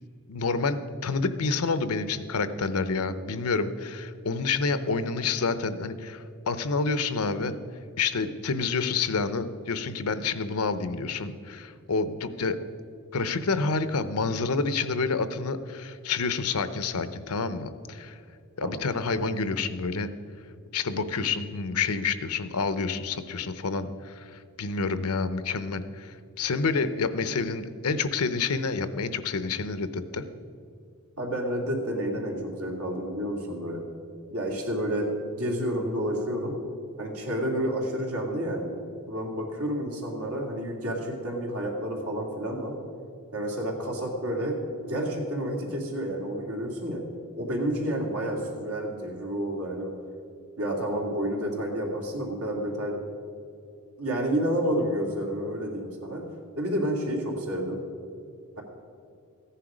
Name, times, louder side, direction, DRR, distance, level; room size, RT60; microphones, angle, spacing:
voice 1, 0.3-7.6 8.0-12.6 13.1-18.2 18.6-20.1 20.7-30.2, left 4 dB, 85° left, 12 dB, 0.7 m, -28 dB
voice 2, 31.2-33.8 34.3-36.6 37.0-38.7 39.1-42.8 43.3-44.6 44.9-47.0 47.4-49.9 50.6-53.0 54.0-56.2 56.6-57.8, equal, 90° right, -1 dB, 2.6 m, -30 dB
15.0 x 10.0 x 5.1 m, 2.5 s
head